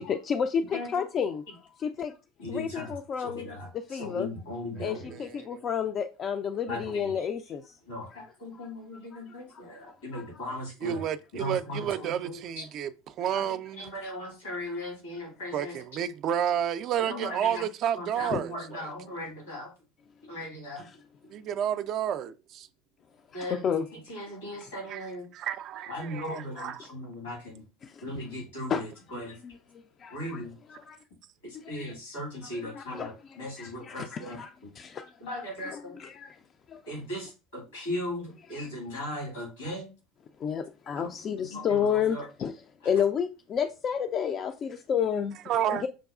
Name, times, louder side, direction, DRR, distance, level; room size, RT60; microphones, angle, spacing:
voice 1, 0.0-1.4 1.8-2.2 2.5-3.5 3.7-4.3 4.8-7.7 8.5-8.7 9.1-9.8 10.1-10.6 10.9-11.0 18.3-18.4 20.8-21.0 23.3-23.9 24.3-24.7 27.8-28.0 28.7-31.0 31.5-31.7 32.4-36.4 36.7-37.0 38.4-38.5 40.4-45.4 45.7-45.9, left 7 dB, 40° left, 0.3 m, -32 dB
voice 2, 2.4-2.9 3.2-3.7 4.0-5.2 6.7-7.0 7.9-11.0 11.3-11.8 13.3-13.4 13.8-15.7 17.0-17.6 18.0-19.7 20.3-20.9 23.3-23.6 24.1-25.3 25.9-27.6 28.0-28.9 29.1-29.4 30.1-30.5 31.4-34.4 35.2-36.0 36.9-39.9 41.0-41.1 41.5-41.9 42.1-42.2, left 1 dB, 80° left, 1.9 m, -37 dB
voice 3, 4.8-5.6 10.8-13.9 15.5-18.9 21.3-22.7 24.9-26.9 45.5-45.9, right 9 dB, 50° right, 0.3 m, -31 dB
6.0 x 2.3 x 2.4 m
hypercardioid pair, 75°, 0 cm